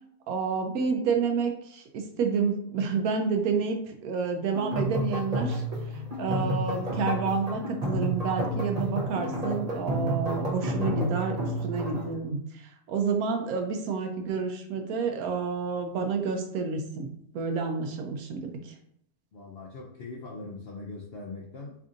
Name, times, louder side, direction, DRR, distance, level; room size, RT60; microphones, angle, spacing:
voice 1, 0.3-5.6 6.2-17.1 17.3-18.7, right 5 dB, 70° right, 4 dB, 1.0 m, -29 dB
sound 1, 4.5-12.1, equal, 45° right, 0.5 m, -31 dB
voice 2, 19.3-21.8, left 3 dB, 70° left, -2 dB, 0.5 m, -41 dB
3.4 x 2.5 x 3.8 m, 0.72 s
omnidirectional pair, 1.7 m